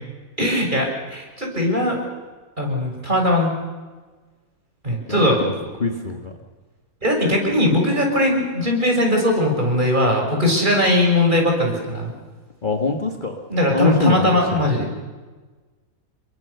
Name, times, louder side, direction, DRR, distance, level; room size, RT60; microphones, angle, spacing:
voice 1, 0.4-2.1 2.6-3.5 4.8-5.4 7.0-12.1 13.5-14.9, left 1 dB, 30° right, 1 dB, 6.3 m, -19 dB
voice 2, 5.1-5.5 5.8-6.3 12.6-13.4 13.7-14.7, left 3 dB, 30° left, 3 dB, 1.8 m, -23 dB
29.0 x 22.5 x 6.8 m, 1.3 s
omnidirectional pair, 1.6 m